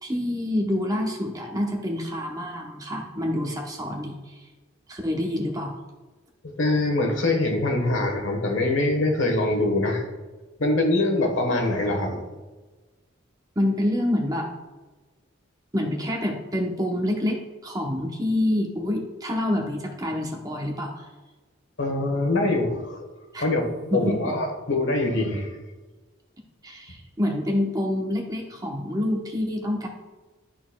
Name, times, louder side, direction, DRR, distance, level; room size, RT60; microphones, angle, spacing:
voice 1, 0.0-4.5 4.9-5.7 13.6-14.5 15.7-21.1 23.3-23.5 23.9-24.3 26.6-29.9, left 1 dB, 20° right, 1 dB, 0.8 m, -27 dB
voice 2, 6.6-10.1 10.6-12.2 21.8-23.1 23.4-25.5, left 2 dB, 70° left, 2 dB, 1.3 m, -24 dB
12.0 x 4.3 x 2.3 m, 1.2 s
head